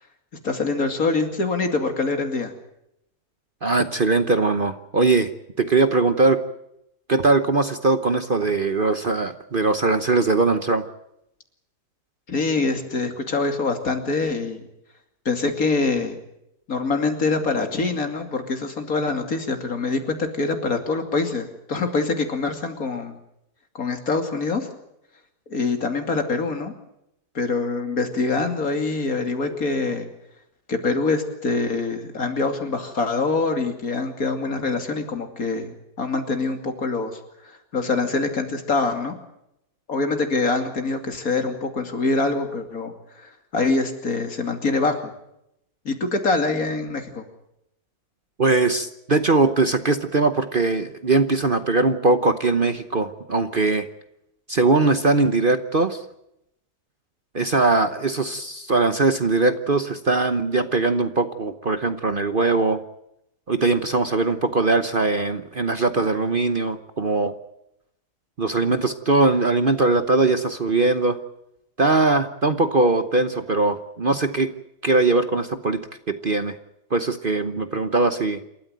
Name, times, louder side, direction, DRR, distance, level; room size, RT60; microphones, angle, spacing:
voice 1, 0.4-2.5 12.3-14.7 15.2-16.2 16.7-23.2 23.7-24.7 25.5-26.7 27.3-30.1 30.7-37.2 37.4-39.1 39.9-45.1 45.8-47.3, left 3 dB, 60° left, 5 dB, 3.1 m, -24 dB
voice 2, 3.6-5.3 5.6-6.4 7.1-10.8 48.4-53.9 54.5-56.0 57.3-62.8 63.5-67.3 68.4-71.2 71.8-74.5 74.8-75.8 76.1-76.5 76.9-78.4, right 3 dB, 40° right, 9 dB, 1.0 m, -21 dB
28.0 x 13.5 x 9.2 m, 0.81 s
omnidirectional pair, 1.7 m